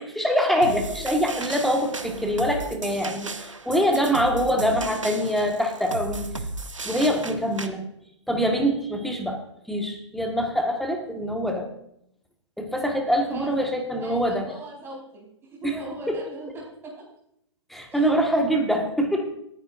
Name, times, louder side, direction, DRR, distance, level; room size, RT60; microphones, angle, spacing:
voice 1, 0.0-6.3 6.8-7.8 8.3-9.4 9.7-11.7 12.6-14.5 15.6-16.2 17.7-19.3, equal, ahead, 2 dB, 1.6 m, -24 dB
sound 1, 0.6-7.7, right 3 dB, 85° right, 1.0 m, -35 dB
voice 2, 13.3-13.7 14.0-17.0 17.9-18.2, right 1 dB, 15° right, -2 dB, 4.8 m, -40 dB
19.5 x 9.7 x 2.6 m, 0.74 s
figure-of-eight pair, 120°, 16 cm